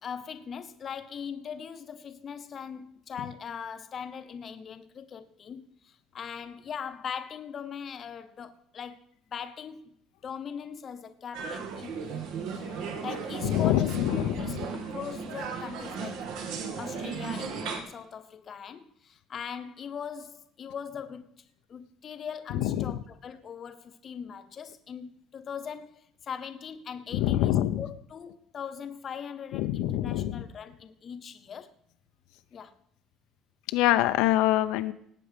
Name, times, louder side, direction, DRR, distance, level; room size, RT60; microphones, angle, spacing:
voice 1, 0.0-9.0 9.3-9.9 10.2-12.2 13.0-14.0 14.3-16.2 16.8-21.4 21.7-31.7 32.5-32.7, left 7 dB, 30° left, 0.9 m, -40 dB
sound 1, 11.3-17.8, right 5 dB, 70° right, 2.0 m, -36 dB
voice 2, 13.5-14.6 22.6-22.9 27.1-27.8 29.5-30.4 33.7-34.9, left 14 dB, 85° left, 0.7 m, -25 dB
18.0 x 8.5 x 5.2 m
cardioid pair, 170°, 0 cm